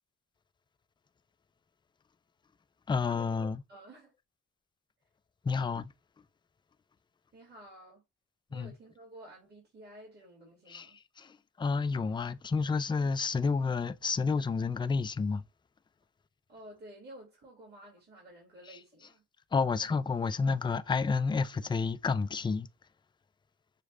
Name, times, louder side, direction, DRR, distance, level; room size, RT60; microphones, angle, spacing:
voice 1, 2.9-3.6 5.4-5.9 8.5-8.8 10.7-15.4 18.6-19.1 19.5-22.7, left 4 dB, 15° left, 0.4 m, -30 dB
voice 2, 3.7-4.1 7.3-8.0 8.5-11.0 16.5-19.2, right 1 dB, 35° right, 2.2 m, -52 dB
6.3 x 2.3 x 3.2 m
cardioid pair, 90°, 30 cm